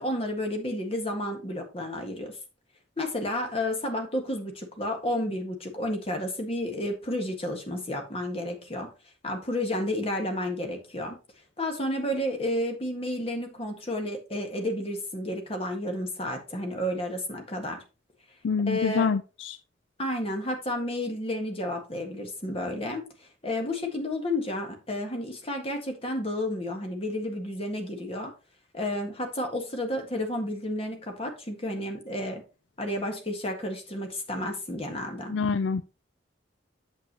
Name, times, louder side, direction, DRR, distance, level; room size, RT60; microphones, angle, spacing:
voice 1, 0.0-2.4 3.0-8.9 9.2-11.2 11.6-17.8 18.7-19.1 20.0-28.3 28.7-32.4 32.8-35.3, left 1 dB, 30° left, 1.7 m, -31 dB
voice 2, 18.4-19.6 35.3-35.8, left 5 dB, 75° left, 0.4 m, -26 dB
8.2 x 7.8 x 2.9 m
head